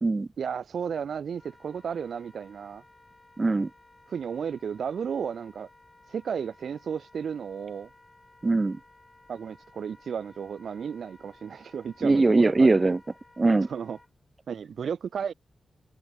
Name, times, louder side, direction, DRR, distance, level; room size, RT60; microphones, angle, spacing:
voice 1, 0.4-2.8 4.1-5.7 6.1-7.9 9.3-12.9 13.7-14.0 14.5-15.3, right 7 dB, 75° right, 0.4 m, -33 dB
Wind instrument woodwind instrument, 1.3-14.1, left 2 dB, 20° left, 5.2 m, -57 dB
voice 2, 3.4-3.7 8.4-8.8 12.0-13.0 13.4-13.7, right 3 dB, 30° right, 0.6 m, -21 dB
wide cardioid pair, 105°, 0 cm